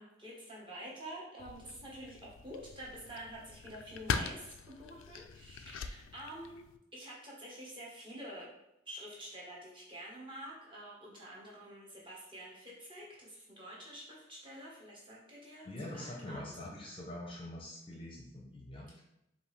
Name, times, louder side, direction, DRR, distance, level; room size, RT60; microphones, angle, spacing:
voice 1, 0.0-6.6 6.9-8.5 8.9-16.4, right 1 dB, 25° right, -5 dB, 1.1 m, -48 dB
sound 1, 1.4-6.8, left 5 dB, 70° left, 0.3 m, -42 dB
voice 2, 15.6-19.0, left 1 dB, 25° left, -2 dB, 0.6 m, -44 dB
5.2 x 2.6 x 3.2 m, 0.85 s
head